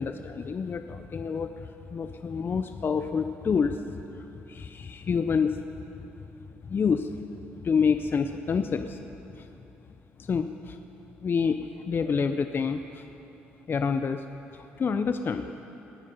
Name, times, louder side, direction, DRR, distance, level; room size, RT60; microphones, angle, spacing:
voice 1, 0.0-5.6 6.6-7.1 7.6-9.0 9.4-9.5 10.2-10.8 11.2-11.6 11.8-13.0 13.7-14.2 14.5-15.5, left 5 dB, 40° left, 9 dB, 0.6 m, -28 dB
19.0 x 10.0 x 5.5 m, 2.9 s
hypercardioid pair, 55°, 5 cm